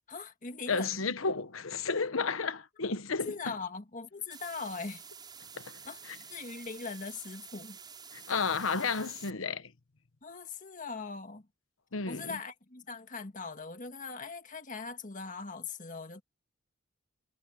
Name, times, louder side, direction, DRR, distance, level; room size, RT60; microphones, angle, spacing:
voice 1, 0.1-1.0 3.2-5.0 5.8-6.0 6.3-7.8 10.2-11.5 12.1-16.2, left 4 dB, 40° left, 1.6 m, -40 dB
voice 2, 0.7-3.5 5.5-5.8 6.1-6.2 8.1-9.7 11.9-12.4, left 4 dB, 80° left, 1.2 m, -32 dB
sound 1, 4.3-9.3, right 6 dB, 20° right, 6.5 m, -49 dB
head